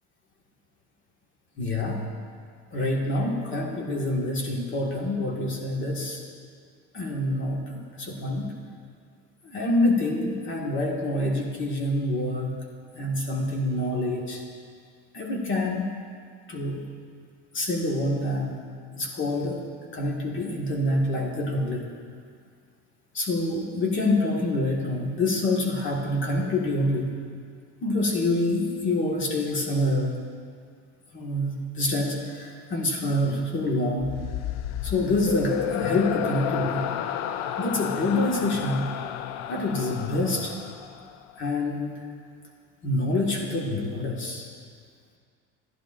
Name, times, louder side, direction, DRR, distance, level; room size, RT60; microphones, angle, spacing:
voice 1, 1.6-2.0 2.7-6.2 6.9-8.5 9.4-12.6 13.0-14.4 15.1-16.0 16.5-16.8 17.5-18.5 19.0-19.7 19.9-21.9 23.1-27.1 27.8-30.1 31.1-34.2 34.8-36.9 37.6-38.9 39.5-40.5 41.4-42.0 42.8-44.5, left 1 dB, 40° left, -1 dB, 1.7 m, -26 dB
sound 1, 34.0-41.4, left 10 dB, 65° left, 0.5 m, -32 dB
15.0 x 11.0 x 2.6 m, 2.1 s
cardioid pair, 135°, 30 cm